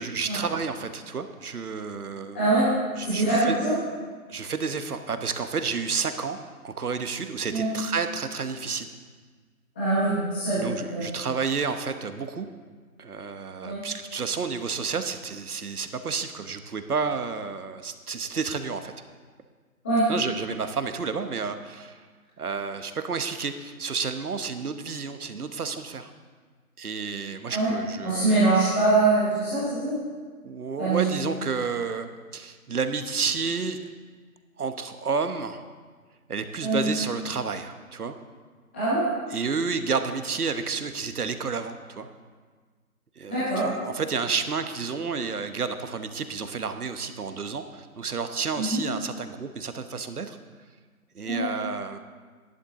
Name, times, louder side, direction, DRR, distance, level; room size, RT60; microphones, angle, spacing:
voice 1, 0.0-2.6 3.0-3.6 4.3-6.4 6.6-8.9 10.5-12.5 13.0-18.9 20.1-22.0 22.4-26.1 26.8-28.4 30.4-32.1 32.3-33.8 34.6-35.6 36.3-38.1 39.3-42.1 43.2-50.4 51.1-52.0, right 5 dB, 75° right, 9 dB, 1.1 m, -30 dB
voice 2, 2.3-2.7 3.0-3.7 7.5-7.7 9.7-10.6 10.9-11.0 13.6-13.8 19.8-20.1 27.5-27.7 28.0-29.9 30.8-31.0 36.6-36.8 38.7-39.1 43.3-43.7 48.5-48.8 51.3-51.5, right 2 dB, 5° left, -14 dB, 1.2 m, -23 dB
11.5 x 11.0 x 3.7 m, 1.5 s
hypercardioid pair, 170°, 45 cm